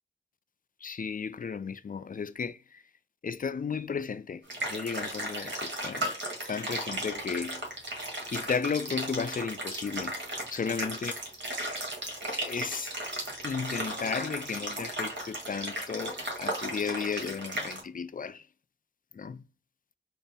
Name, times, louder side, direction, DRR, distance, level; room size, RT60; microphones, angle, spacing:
voice 1, 0.8-2.8 3.2-4.4 4.7-6.1 6.5-7.7 8.3-10.2 10.5-11.1 12.2-12.9 13.4-18.5 19.1-19.4, left 6 dB, 40° left, 0.4 m, -34 dB
sound 1, 4.5-17.8, right 1 dB, 60° right, 1.4 m, -35 dB
4.1 x 2.0 x 3.5 m
cardioid pair, 40°, 21 cm